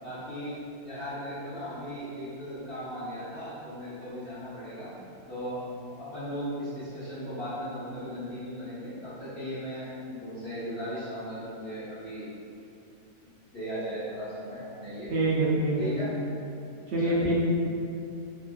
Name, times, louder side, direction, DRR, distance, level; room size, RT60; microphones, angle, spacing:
voice 1, 0.0-4.9 5.3-12.3 13.5-15.1 15.8-16.1 17.0-17.2, equal, 45° left, -14 dB, 0.8 m, -37 dB
voice 2, 15.1-15.9 16.9-17.4, right 2 dB, 70° right, -7 dB, 0.6 m, -25 dB
2.9 x 2.4 x 2.3 m, 2.5 s
omnidirectional pair, 1.6 m